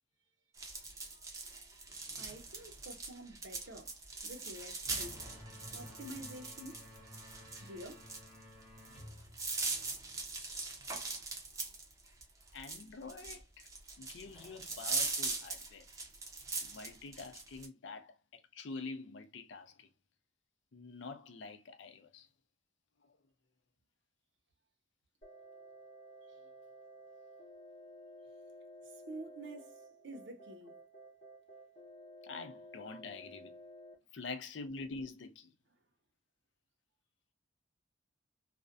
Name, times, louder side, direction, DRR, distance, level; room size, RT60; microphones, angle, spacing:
sound 1, 0.6-17.7, right 3 dB, 20° right, 0.5 m, -41 dB
voice 1, 2.1-5.3 5.7-6.9 7.6-8.1 26.2-26.4 28.9-30.8, right 1 dB, 75° right, 0.6 m, -49 dB
sound 2, 4.8-10.2, left 1 dB, ahead, 0.8 m, -53 dB
voice 2, 12.5-13.7 14.0-15.9 16.6-19.9 20.7-22.3 23.0-23.2 32.2-33.5 34.1-35.5, left 3 dB, 80° left, 0.5 m, -46 dB
sound 3, 25.2-34.0, equal, 40° left, 0.8 m, -54 dB
2.4 x 2.1 x 2.4 m
head